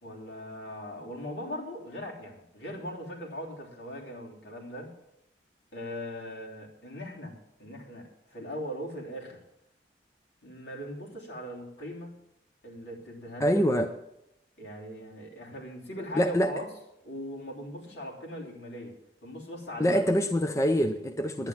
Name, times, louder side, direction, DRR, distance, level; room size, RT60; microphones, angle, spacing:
voice 1, 0.0-4.9 5.7-9.4 10.4-12.2 12.6-13.6 14.6-16.7 17.0-20.0, equal, 70° left, -3 dB, 3.3 m, -40 dB
voice 2, 13.4-13.9 16.1-16.5 19.8-21.5, equal, 15° left, 6 dB, 0.6 m, -25 dB
10.5 x 9.6 x 7.3 m, 0.83 s
head